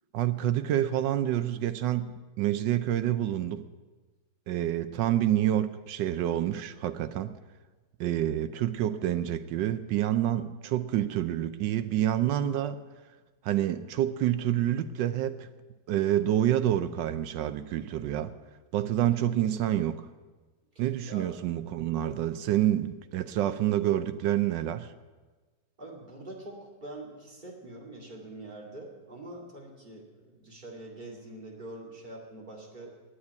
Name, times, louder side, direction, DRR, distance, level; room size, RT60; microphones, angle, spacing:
voice 1, 0.1-3.6 4.5-7.3 8.0-12.8 13.4-15.5 15.9-18.3 18.7-20.0 20.8-24.9, right 12 dB, 75° right, 12 dB, 1.1 m, -28 dB
voice 2, 19.3-19.6 20.7-21.3 25.8-33.0, right 2 dB, 20° right, -2 dB, 2.3 m, -44 dB
9.7 x 8.8 x 9.4 m, 1.3 s
omnidirectional pair, 2.3 m